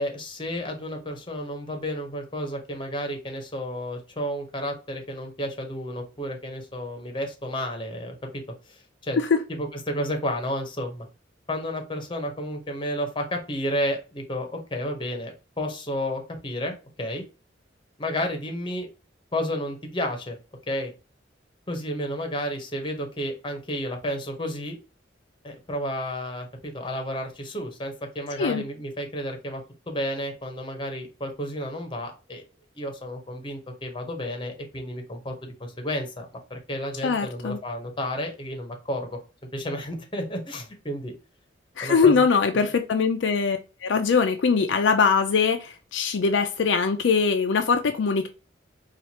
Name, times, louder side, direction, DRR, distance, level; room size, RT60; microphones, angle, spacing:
voice 1, 0.0-8.4 8.7-9.2 9.5-11.1 11.5-17.2 18.0-18.9 19.3-20.4 20.7-20.9 21.7-24.8 25.4-32.4 32.7-39.2 39.5-41.1 41.8-42.1 42.5-42.7, equal, 25° left, 0.9 m, -31 dB
voice 2, 37.0-37.6 41.8-48.3, left 5 dB, 70° left, 0.4 m, -22 dB
4.3 x 2.4 x 2.8 m
head